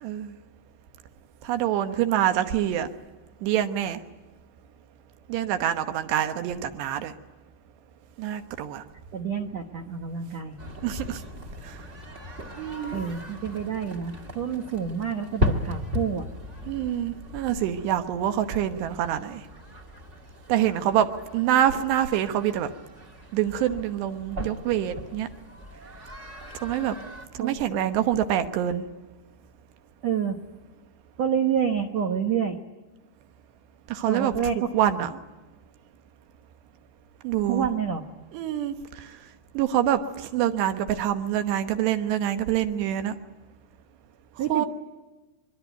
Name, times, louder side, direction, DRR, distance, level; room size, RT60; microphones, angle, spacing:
voice 1, 0.0-0.3 1.4-2.9 3.4-4.0 5.3-7.1 8.2-8.8 10.8-11.2 11.6-11.8 12.6-12.9 16.7-19.4 20.5-21.1 21.3-22.7 23.3-25.3 26.6-27.0 27.4-28.8 33.9-34.3 34.7-35.1 37.2-37.7 38.3-38.8 39.5-43.1 44.5-44.7, right 11 dB, 85° right, 8 dB, 3.3 m, -25 dB
voice 2, 9.1-10.6 12.9-16.3 27.4-27.5 30.0-30.4 31.2-32.6 34.0-35.1 37.5-38.0 44.4-44.7, right 7 dB, 65° right, 3 dB, 1.7 m, -28 dB
sound 1, 10.6-27.3, left 2 dB, 35° right, 1.2 m, -37 dB
25.5 x 22.5 x 9.2 m, 1.2 s
omnidirectional pair, 4.8 m